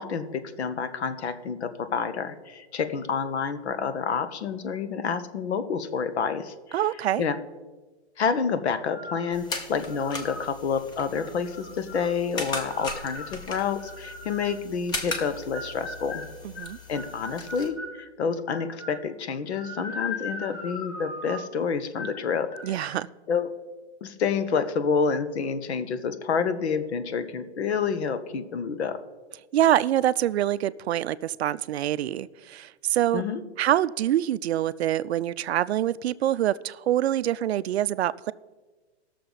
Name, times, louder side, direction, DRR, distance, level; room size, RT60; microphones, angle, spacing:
voice 1, 0.0-6.8 7.2-7.4 8.2-16.2 16.9-22.9 23.3-23.5 24.0-29.0 33.1-33.4, left 6 dB, 70° left, 1.1 m, -28 dB
voice 2, 6.7-7.2 16.4-16.8 22.6-23.1 29.5-33.2 33.6-38.3, right 12 dB, 70° right, 0.5 m, -25 dB
sound 1, 8.9-9.3 9.9-10.5 11.1-12.1 12.7-14.6 15.2-18.0 18.5-19.0 19.5-21.5 21.9-22.2 22.5-22.9, left 2 dB, 85° left, 3.1 m, -39 dB
sound 2, 9.3-17.7, left 2 dB, 10° left, 0.8 m, -38 dB
18.5 x 6.7 x 4.0 m
hypercardioid pair, 150°, 34 cm